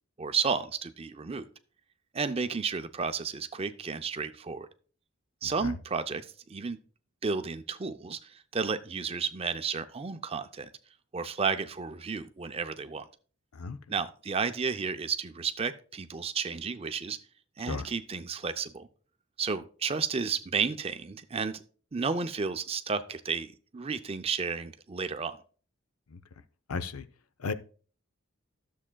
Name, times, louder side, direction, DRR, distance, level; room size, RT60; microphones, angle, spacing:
voice 1, 0.2-1.5 2.1-4.7 5.4-6.8 7.2-10.7 11.1-13.0 13.9-17.2 17.6-18.9 19.4-21.6 21.9-25.4, right 5 dB, 25° right, 0.4 m, -32 dB
voice 2, 26.7-27.1 27.4-27.5, left 4 dB, 80° left, 0.6 m, -34 dB
12.5 x 7.3 x 2.2 m
head